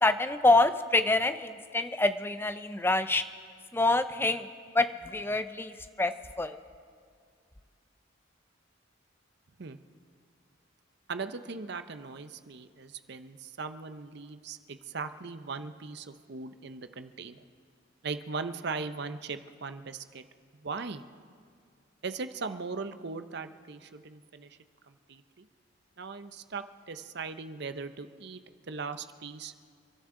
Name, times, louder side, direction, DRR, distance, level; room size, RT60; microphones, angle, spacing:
voice 1, 0.0-3.2 3.7-4.5 4.7-6.1 6.4-6.6, left 2 dB, 10° left, 11 dB, 0.5 m, -26 dB
voice 2, 11.1-17.4 18.0-20.2 20.5-21.0 22.0-24.6 24.9-25.5 26.0-28.4 28.7-29.5, right 4 dB, 55° right, 10 dB, 0.7 m, -39 dB
29.5 x 12.5 x 3.8 m, 2.1 s
head